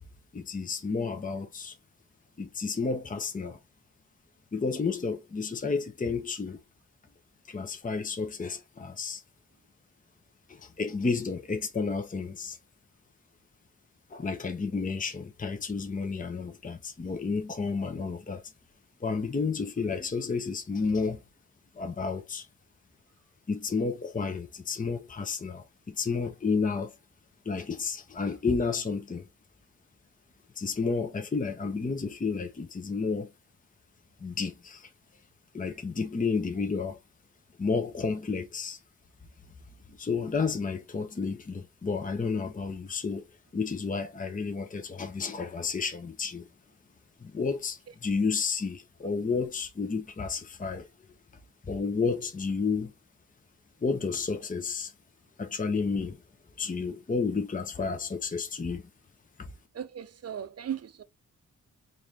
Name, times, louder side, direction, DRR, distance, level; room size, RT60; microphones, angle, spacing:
voice 1, 0.3-1.8 2.4-3.6 4.5-6.6 7.5-9.2 10.5-12.6 14.1-18.4 19.0-21.2 21.7-22.5 23.5-26.9 27.4-29.3 30.6-33.3 34.2-34.9 35.5-37.0 37.6-38.8 40.0-43.3 43.5-46.5 47.2-50.9 51.7-52.9 53.8-54.9 55.4-56.2 56.6-58.9 59.4-59.5, left 4 dB, 25° left, 0.7 m, -31 dB
voice 2, 59.7-61.0, right 9 dB, 50° right, 0.6 m, -37 dB
4.0 x 2.5 x 3.1 m
cardioid pair, 70°, 33 cm